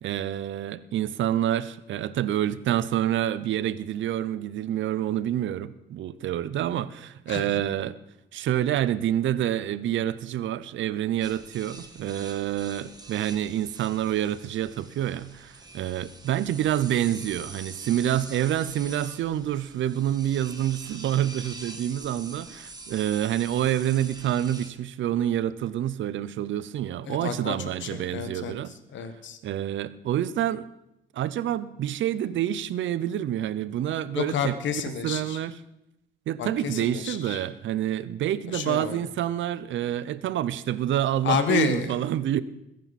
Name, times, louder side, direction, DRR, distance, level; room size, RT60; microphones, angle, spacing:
voice 1, 0.0-8.0 8.3-28.7 29.4-30.7 31.1-35.6 36.3-42.4, right 11 dB, 75° right, 17 dB, 0.7 m, -27 dB
voice 2, 7.3-7.6 27.1-29.4 34.2-35.4 36.4-37.4 38.5-39.0 41.2-42.0, left 7 dB, 70° left, 9 dB, 1.6 m, -30 dB
sound 1, 11.2-24.7, right 2 dB, 20° right, 1.8 m, -45 dB
21.5 x 10.5 x 4.2 m, 0.88 s
cardioid pair, 90°, 20 cm